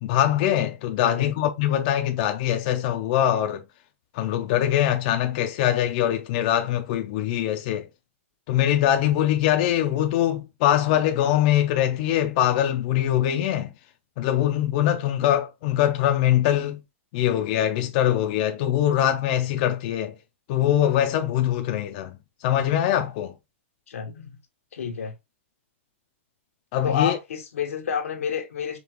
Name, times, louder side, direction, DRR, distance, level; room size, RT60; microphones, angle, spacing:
voice 1, 0.0-3.6 4.1-7.9 8.5-13.7 14.2-16.8 17.1-20.1 20.5-23.3 26.7-27.2, left 11 dB, 35° left, 0.5 m, -23 dB
voice 2, 1.0-1.3 23.9-24.3 24.7-25.1 26.8-28.8, left 7 dB, 85° left, 1.2 m, -29 dB
5.2 x 2.3 x 2.9 m
hypercardioid pair, 160°, 7 cm